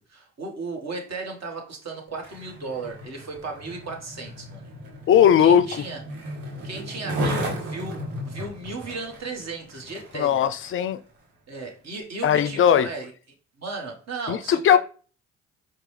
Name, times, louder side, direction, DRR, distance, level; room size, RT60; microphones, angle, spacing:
voice 1, 0.1-4.7 5.4-6.0 6.6-10.4 11.5-13.1 13.6-14.8, right 3 dB, 50° right, 1.4 m, -35 dB
Skateboard, 2.1-10.9 11.5-11.7, equal, 85° right, 1.1 m, -35 dB
voice 2, 5.1-5.8 10.1-11.0 12.2-12.9 14.3-14.8, left 9 dB, 40° left, 0.4 m, -18 dB
4.7 x 2.3 x 3.2 m
hypercardioid pair, 50°, 34 cm